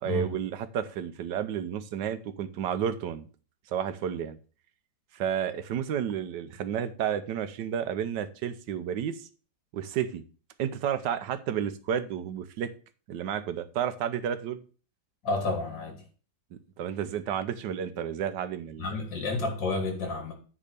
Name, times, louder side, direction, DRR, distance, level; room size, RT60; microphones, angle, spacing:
voice 1, 0.0-3.2 3.7-4.4 5.1-9.3 9.7-10.2 10.6-12.7 13.1-14.6 16.5-18.9, right 9 dB, 75° right, 11 dB, 1.4 m, -31 dB
voice 2, 15.2-16.0 18.8-20.3, left 3 dB, 80° left, 2 dB, 3.2 m, -30 dB
9.9 x 3.7 x 6.7 m, 0.38 s
omnidirectional pair, 2.0 m